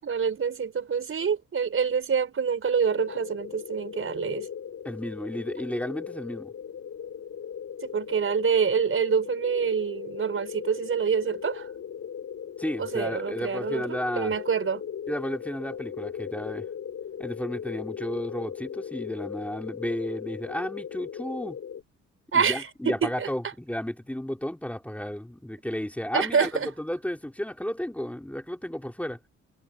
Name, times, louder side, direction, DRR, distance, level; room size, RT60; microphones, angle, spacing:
voice 1, 0.0-4.5 7.8-11.7 12.8-14.8 22.3-23.5 26.1-26.7, right 6 dB, 45° right, 5.2 m, -26 dB
sound 1, 2.8-21.8, left 8 dB, 50° left, 5.5 m, -38 dB
voice 2, 4.8-6.5 12.6-14.3 15.1-16.7 17.2-21.6 22.3-26.5 26.8-29.2, left 1 dB, 5° left, 3.9 m, -33 dB
cardioid pair, 90°, 30 cm